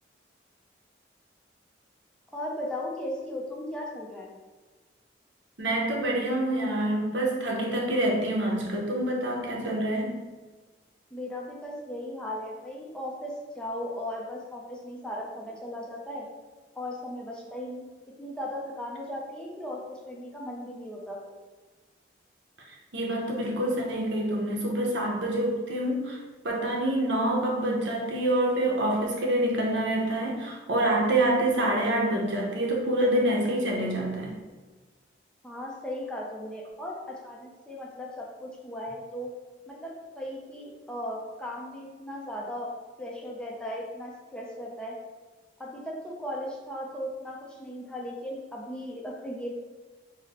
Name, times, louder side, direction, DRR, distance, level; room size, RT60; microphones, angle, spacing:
voice 1, 2.3-4.3 11.1-16.3 16.8-17.9 18.2-21.3 35.4-39.3 39.7-42.7 43.0-44.9 45.6-49.5, left 1 dB, 5° left, -3 dB, 0.5 m, -37 dB
voice 2, 5.6-10.2 22.9-26.2 26.4-34.4, right 1 dB, 75° right, -1 dB, 0.8 m, -26 dB
4.0 x 2.1 x 4.2 m, 1.3 s
head